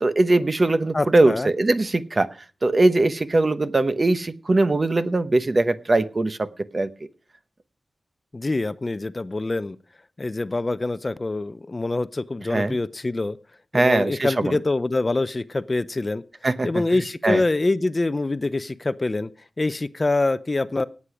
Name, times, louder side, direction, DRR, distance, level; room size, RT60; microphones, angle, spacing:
voice 1, 0.0-2.4 2.6-6.5 6.7-6.9 12.5-12.8 13.7-14.6 16.4-16.7 17.2-17.4, right 2 dB, 35° right, 12 dB, 0.9 m, -21 dB
voice 2, 0.9-1.5 8.3-9.8 10.2-13.4 13.7-16.2 16.6-19.3 19.6-20.8, left 2 dB, 30° left, 15 dB, 0.5 m, -25 dB
17.5 x 8.5 x 4.9 m, 0.38 s
wide cardioid pair, 110°, 0 cm